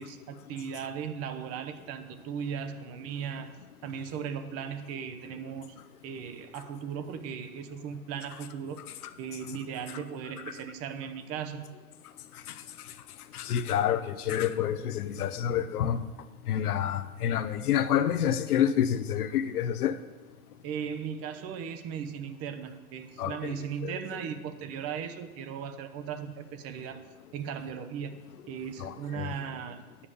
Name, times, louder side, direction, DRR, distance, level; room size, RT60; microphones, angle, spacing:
voice 1, 0.0-3.5 3.8-5.7 6.0-8.8 9.2-11.8 14.3-14.4 20.6-27.0 27.3-28.2 28.5-30.1, right 7 dB, 35° right, 0.8 m, -37 dB
voice 2, 12.3-12.9 13.3-16.0 16.5-20.0 23.2-23.6 23.8-23.9 28.8-29.3, left 9 dB, 90° left, 0.8 m, -28 dB
9.4 x 5.6 x 6.8 m
hypercardioid pair, 120°, 43 cm